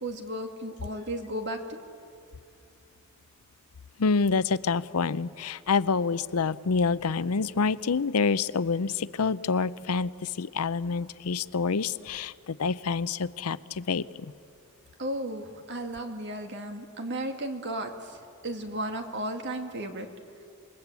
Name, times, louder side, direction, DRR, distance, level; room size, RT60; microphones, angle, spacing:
voice 1, 0.0-1.8 15.0-20.1, right 1 dB, 55° right, 4 dB, 2.3 m, -34 dB
voice 2, 4.0-14.3, left 4 dB, 90° left, 16 dB, 0.6 m, -27 dB
26.5 x 21.5 x 8.3 m, 2.4 s
head